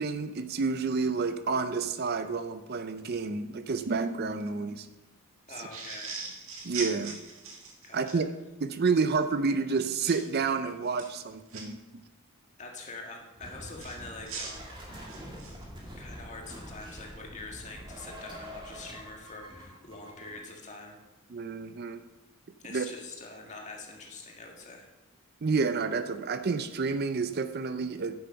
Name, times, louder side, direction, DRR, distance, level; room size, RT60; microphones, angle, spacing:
voice 1, 0.0-4.9 5.6-5.7 6.6-7.2 7.9-8.3 8.6-12.0 21.3-22.0 22.7-22.8 25.4-28.1, right 4 dB, 45° right, 10 dB, 0.5 m, -29 dB
voice 2, 5.5-6.3 7.8-8.2 12.6-14.8 16.0-21.0 22.6-24.9, left 3 dB, 35° left, 1 dB, 1.8 m, -44 dB
sound 1, 5.7-8.2 10.1-10.3 10.8-11.6 13.8-15.6, right 4 dB, 70° right, 1.9 m, -40 dB
sound 2, 13.4-20.4, equal, 20° right, 2.3 m, -45 dB
9.4 x 7.9 x 5.7 m, 1.1 s
head